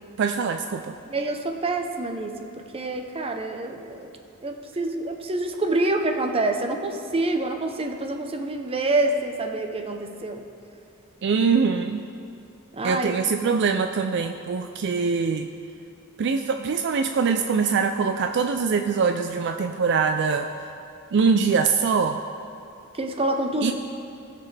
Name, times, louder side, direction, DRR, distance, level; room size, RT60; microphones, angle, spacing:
voice 1, 0.2-0.9 11.2-12.0 12.8-15.5 16.2-20.5 21.1-22.2 23.6-23.7, right 5 dB, 55° right, 6 dB, 0.4 m, -23 dB
voice 2, 1.1-4.1 4.4-10.4 12.7-13.1 22.9-23.7, right 2 dB, 25° right, 5 dB, 0.7 m, -27 dB
20.0 x 6.8 x 3.3 m, 2.6 s
head